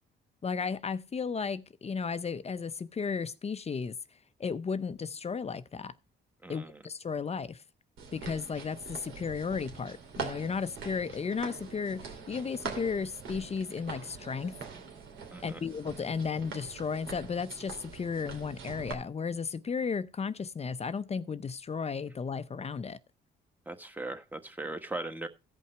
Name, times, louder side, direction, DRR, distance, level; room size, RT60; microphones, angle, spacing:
voice 1, 0.4-4.0 4.4-5.9 6.5-7.6 8.1-14.5 15.4-23.0, left 5 dB, 30° left, 0.6 m, -34 dB
voice 2, 6.4-6.8 15.3-15.6 23.6-25.3, right 2 dB, 10° right, 1.5 m, -39 dB
sound 1, 8.0-18.9, right 6 dB, 85° right, 2.9 m, -43 dB
16.5 x 5.6 x 4.5 m
cardioid pair, 90°, 20 cm